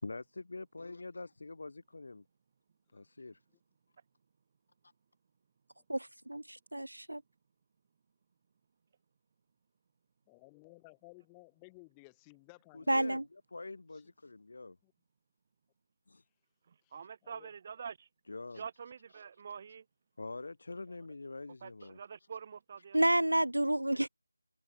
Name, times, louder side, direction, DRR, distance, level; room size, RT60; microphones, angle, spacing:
voice 1, 0.0-2.2 2.9-3.4 12.7-14.8 16.1-16.2 18.3-18.6 20.2-22.0, left 3 dB, 50° left, 2.9 m, -45 dB
voice 2, 5.9-7.2 12.9-13.2 22.9-24.1, right 1 dB, 85° right, 0.5 m, -30 dB
voice 3, 10.3-13.2 13.9-14.0 14.8-14.9 16.8-16.9 17.2-17.5, left 31 dB, 10° left, 2.2 m, -57 dB
voice 4, 16.9-18.1 18.5-19.8 20.9-21.0 21.6-23.2, right 6 dB, 25° right, 0.5 m, -46 dB
figure-of-eight pair, 165°, 0 cm